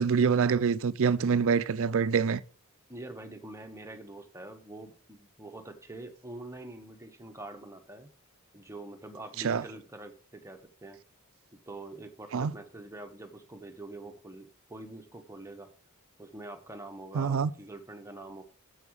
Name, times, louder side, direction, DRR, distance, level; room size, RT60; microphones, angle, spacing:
voice 1, 0.0-2.4 9.4-9.6 12.3-12.5 17.1-17.5, right 6 dB, 65° right, 0.4 m, -25 dB
voice 2, 2.9-8.1 8.5-11.0 11.7-15.7 16.2-18.4, right 2 dB, 15° right, 0.9 m, -45 dB
7.1 x 5.4 x 6.2 m
head